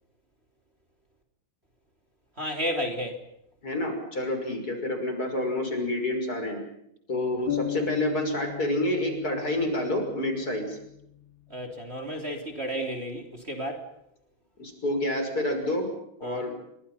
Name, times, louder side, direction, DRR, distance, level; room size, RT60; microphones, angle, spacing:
voice 1, 2.4-3.2 11.5-13.9 16.2-16.5, equal, 30° right, 4 dB, 3.5 m, -32 dB
voice 2, 3.6-6.6 7.1-10.8 14.6-15.9 16.2-16.5, left 1 dB, 45° left, 5 dB, 6.5 m, -28 dB
sound 1, 7.5-11.2, left 13 dB, 65° left, 3.7 m, -36 dB
30.0 x 25.5 x 5.7 m, 0.78 s
omnidirectional pair, 2.3 m